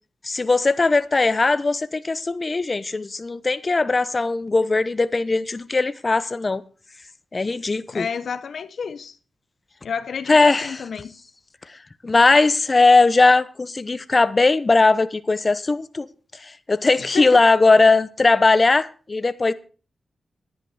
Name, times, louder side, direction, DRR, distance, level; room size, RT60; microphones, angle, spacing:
voice 1, 0.2-6.6 7.3-8.1 10.3-10.7 12.0-16.1 16.4-19.5, left 3 dB, 40° left, 0.8 m, -19 dB
voice 2, 7.9-9.2 9.8-11.1 17.0-17.4, left 6 dB, 75° left, 0.7 m, -30 dB
10.5 x 10.5 x 4.9 m
cardioid pair, 50°, 0 cm